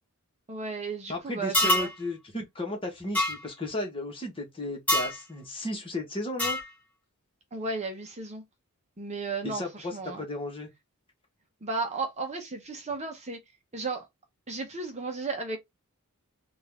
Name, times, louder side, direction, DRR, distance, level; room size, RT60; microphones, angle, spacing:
voice 1, 0.5-1.9 7.5-8.4 9.0-10.2 11.6-13.4 13.7-14.1 14.5-15.6, right 3 dB, 30° right, 0.8 m, -34 dB
voice 2, 1.1-6.6 9.4-10.7, left 1 dB, 25° left, 1.5 m, -34 dB
sound 1, 1.5-1.9 3.1-3.3 4.9-5.2 6.4-6.7, left 1 dB, 5° left, 1.1 m, -25 dB
3.9 x 2.6 x 3.5 m
head